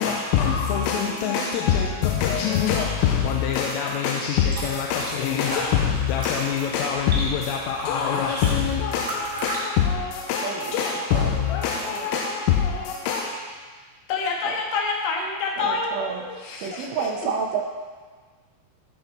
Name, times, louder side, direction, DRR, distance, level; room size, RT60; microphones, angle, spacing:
voice 1, 0.0-13.3, left 7 dB, 85° left, -1 dB, 3.3 m, -24 dB
voice 2, 0.9-1.5 10.4-11.4 11.8-12.1 14.5-14.6 15.6-16.2 16.6-17.6, right 6 dB, 80° right, 1 dB, 3.2 m, -31 dB
sound 1, 4.3-9.6, right 1 dB, 10° right, 2.0 m, -36 dB
voice 3, 14.1-17.1, left 4 dB, 65° left, 0 dB, 2.6 m, -27 dB
15.0 x 5.9 x 4.3 m, 1.5 s
omnidirectional pair, 5.9 m